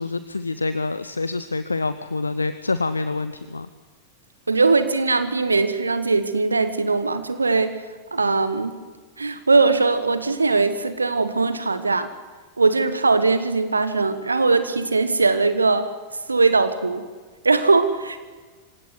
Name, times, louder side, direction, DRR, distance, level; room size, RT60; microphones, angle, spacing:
voice 1, 0.0-3.7, left 3 dB, 80° left, 13 dB, 0.8 m, -26 dB
voice 2, 4.5-7.8 8.1-8.8 9.2-12.1 12.6-15.9 16.3-17.0 17.4-18.2, right 3 dB, 80° right, 11 dB, 1.2 m, -20 dB
26.0 x 17.0 x 9.5 m, 1.4 s
figure-of-eight pair, 90°, 0 cm